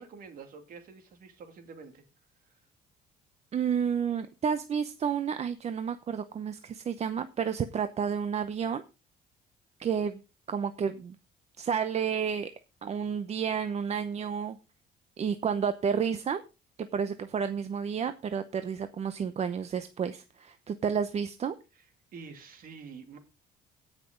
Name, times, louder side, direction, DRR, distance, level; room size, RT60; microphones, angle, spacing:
voice 1, 0.0-2.0 2.4-2.6 21.7-21.9 22.1-23.2, right 5 dB, 55° right, 2.6 m, -47 dB
voice 2, 3.5-8.8 9.8-10.2 10.5-11.1 11.6-12.5 12.8-14.6 15.2-16.4 16.8-21.5, right 7 dB, 40° right, 0.7 m, -31 dB
17.0 x 6.0 x 3.8 m
cardioid pair, 110°, 17 cm